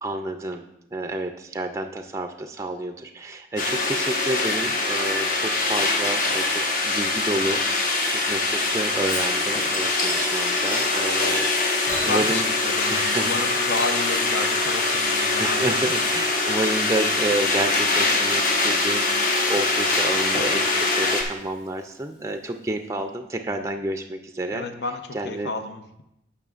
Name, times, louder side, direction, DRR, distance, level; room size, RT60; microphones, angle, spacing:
voice 1, 0.0-12.4 12.9-13.6 15.4-24.7 25.1-25.5, right 1 dB, 15° right, 6 dB, 0.4 m, -30 dB
sound 1, 3.6-21.2, left 3 dB, 45° left, 1.0 m, -23 dB
Chink clink / Liquid, 9.1-10.9 11.9-13.0 13.3-22.3 22.7-22.8, left 1 dB, 30° left, 1.9 m, -40 dB
voice 2, 11.9-15.6 16.0-16.1 24.5-26.0, left 3 dB, 70° left, 7 dB, 0.7 m, -31 dB
16.0 x 5.7 x 2.4 m, 0.84 s
head